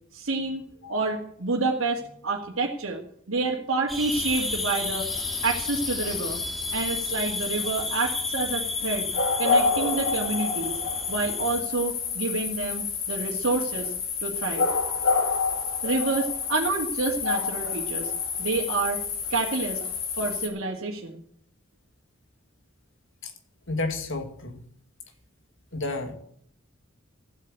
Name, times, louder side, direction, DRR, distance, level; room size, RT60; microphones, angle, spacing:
voice 1, 0.1-0.6 0.9-3.0 3.3-5.1 5.4-6.4 6.7-9.1 9.4-10.8 11.1-13.9 14.2-14.7 15.8-18.1 18.4-19.0 19.3-19.8 20.2-21.2, right 3 dB, 90° right, -3 dB, 2.2 m, -28 dB
sound 1, 3.9-11.6, right 1 dB, ahead, 2.1 m, -36 dB
sound 2, 4.1-20.5, left 5 dB, 80° left, 3.1 m, -29 dB
voice 2, 23.7-24.6 25.7-26.1, left 2 dB, 65° left, 6 dB, 2.4 m, -31 dB
15.5 x 8.1 x 9.0 m, 0.66 s
head